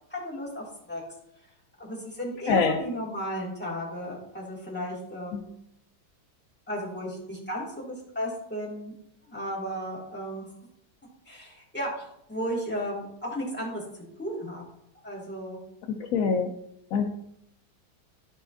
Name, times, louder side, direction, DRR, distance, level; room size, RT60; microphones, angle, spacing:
voice 1, 0.1-1.0 1.8-5.5 6.7-8.9 9.2-10.5 11.3-14.6 15.0-15.6, equal, 5° left, -5 dB, 1.9 m, -34 dB
voice 2, 2.5-2.8 5.3-5.4 16.0-16.5 16.9-17.1, left 5 dB, 80° left, 4 dB, 0.7 m, -24 dB
12.5 x 4.9 x 2.6 m, 0.76 s
omnidirectional pair, 2.1 m